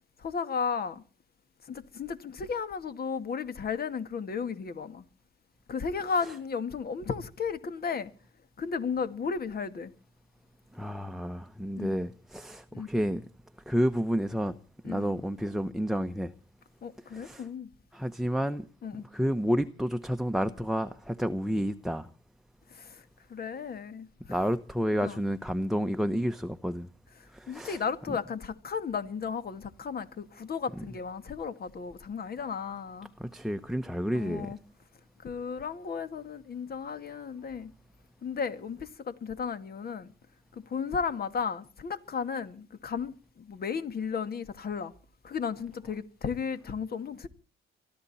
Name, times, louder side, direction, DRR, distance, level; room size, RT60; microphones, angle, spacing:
voice 1, 0.2-1.0 1.7-5.0 5.7-8.1 8.6-9.9 11.8-11.9 12.7-12.9 14.8-15.1 16.8-17.7 18.8-19.1 22.7-23.0 23.3-24.4 25.0-25.2 27.5-33.1 34.1-34.6 35.2-37.7 38.2-40.1 40.5-44.9 45.2-47.3, left 6 dB, 50° left, 2.2 m, -34 dB
voice 2, 10.7-13.2 13.7-14.6 14.8-16.3 17.1-17.5 17.9-18.7 19.1-22.1 24.3-26.9 27.3-27.8 33.2-34.5, equal, ahead, 1.0 m, -30 dB
24.0 x 13.0 x 4.3 m
cardioid pair, 90°, 20 cm